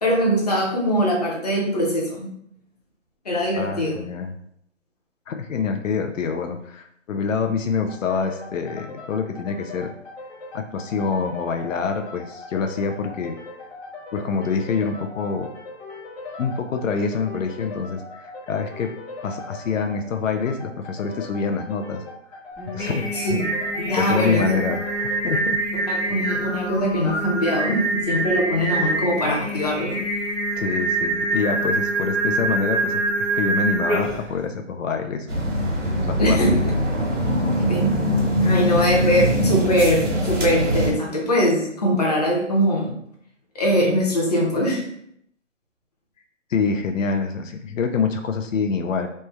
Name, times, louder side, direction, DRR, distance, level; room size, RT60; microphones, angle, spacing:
voice 1, 0.0-2.3 3.2-4.0 23.2-24.5 25.9-30.0 36.2-36.7 37.7-38.0 38.4-42.9 43.5-44.8, equal, 30° left, -2 dB, 0.7 m, -22 dB
voice 2, 3.6-4.3 5.3-9.9 10.5-13.4 14.1-15.5 16.4-18.9 19.2-22.0 22.3-22.4 22.7-23.4 24.0-25.6 30.6-35.3 36.0-36.6 37.5-37.7 38.4-38.9 46.5-49.1, left 5 dB, 80° left, 5 dB, 0.5 m, -26 dB
sound 1, 7.9-25.3, left 3 dB, 60° left, 1.4 m, -39 dB
Singing, 22.6-34.3, right 2 dB, 5° right, 0.6 m, -25 dB
sound 2, 35.3-40.9, equal, 70° right, 1.4 m, -22 dB
3.2 x 2.2 x 3.2 m, 0.70 s
hypercardioid pair, 165°, 38 cm